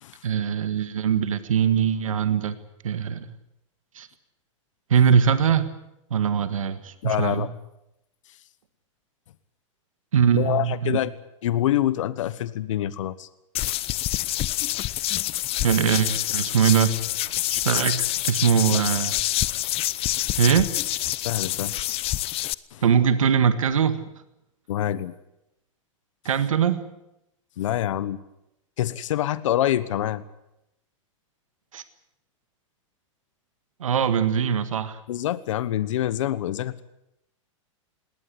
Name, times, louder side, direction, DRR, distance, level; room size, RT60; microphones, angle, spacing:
voice 1, 0.2-2.6 2.8-3.3 3.9-4.1 4.9-5.7 6.1-7.5 10.1-11.0 15.6-16.9 17.5-19.1 20.4-20.7 22.8-24.0 26.2-26.8 31.7-31.8 33.8-35.0, right 7 dB, 85° right, 11 dB, 1.7 m, -22 dB
voice 2, 7.0-7.5 10.3-11.1 11.4-13.3 18.7-18.8 21.2-21.7 22.7-22.8 24.7-25.1 27.6-28.2 28.8-30.2 35.1-36.8, left 12 dB, 70° left, 16 dB, 1.2 m, -26 dB
sound 1, 13.5-22.5, left 16 dB, 35° left, 0.8 m, -27 dB
20.5 x 18.5 x 9.8 m, 0.86 s
hypercardioid pair, 110°, 17 cm